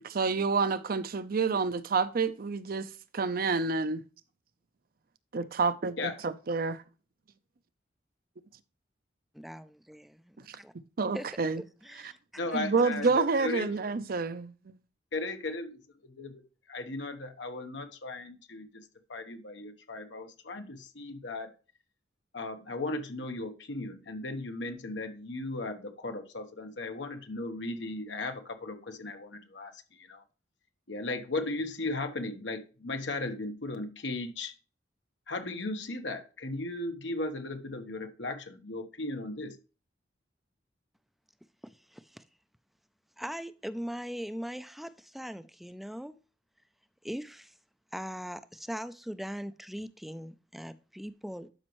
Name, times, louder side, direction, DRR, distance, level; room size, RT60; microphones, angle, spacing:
voice 1, 0.0-4.0 5.3-6.8 10.5-10.6 11.0-11.6 12.0-12.1 12.5-14.8, right 4 dB, 55° right, 0.6 m, -29 dB
voice 2, 9.3-10.7 11.1-11.3 11.8-12.2 41.6-42.2 43.2-46.2 47.0-47.5 47.9-51.5, equal, ahead, 0.3 m, -40 dB
voice 3, 12.4-13.7 15.1-15.8 16.2-16.4 16.7-21.5 22.3-30.2 30.9-34.5 35.3-39.6, left 2 dB, 85° left, 1.2 m, -36 dB
12.0 x 5.3 x 3.0 m
head